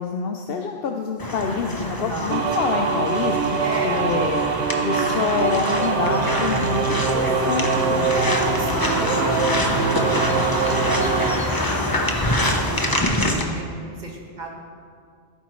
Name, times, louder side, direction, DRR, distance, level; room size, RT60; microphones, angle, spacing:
voice 1, 0.0-3.6 3.8-8.1, left 5 dB, 65° left, 3 dB, 0.8 m, -26 dB
sound 1, 1.2-13.4, left 1 dB, 20° left, 0.8 m, -25 dB
voice 2, 1.9-2.4 3.6-4.1 8.1-11.5 11.7-14.6, right 1 dB, 40° right, -3 dB, 2.0 m, -33 dB
sound 2, 2.3-11.4, right 5 dB, 90° right, 1.0 m, -23 dB
16.0 x 9.2 x 3.1 m, 2.2 s
omnidirectional pair, 1.1 m